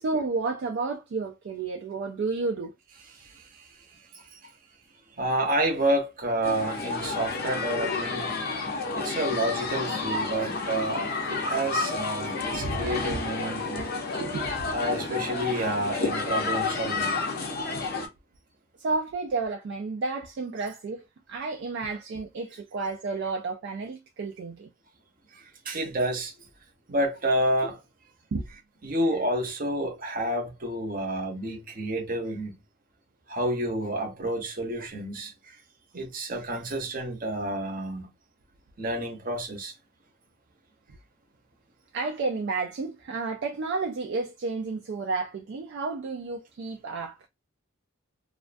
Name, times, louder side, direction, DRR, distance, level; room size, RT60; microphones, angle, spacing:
voice 1, 0.0-2.7 12.4-13.2 14.2-14.7 18.8-24.7 28.3-28.5 41.9-47.2, right 3 dB, 55° right, 0.3 m, -31 dB
voice 2, 3.2-3.7 4.1-4.5 5.2-8.6 8.9-13.9 14.7-17.1 25.3-26.3 26.9-27.8 28.8-32.6 33.3-35.6 35.9-38.1 38.8-39.7, right 1 dB, 40° right, 0.7 m, -29 dB
sound 1, 6.4-18.1, left 3 dB, 45° left, 0.5 m, -30 dB
2.3 x 2.3 x 2.5 m
head